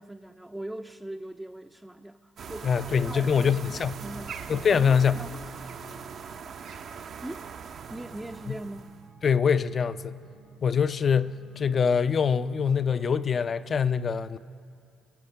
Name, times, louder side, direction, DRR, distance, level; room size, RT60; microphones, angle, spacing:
voice 1, 0.0-3.6 4.0-5.4 7.2-7.4 7.9-8.8, right 1 dB, 10° right, 0.5 m, -40 dB
sound 1, 2.4-9.1, right 6 dB, 55° right, 0.7 m, -41 dB
voice 2, 2.6-4.0 4.5-5.2 9.2-10.2 10.6-14.4, left 6 dB, 45° left, 0.5 m, -24 dB
sound 2, 7.7-13.6, right 6 dB, 90° right, 4.1 m, -54 dB
23.0 x 7.8 x 6.5 m
hypercardioid pair, 55°, 0 cm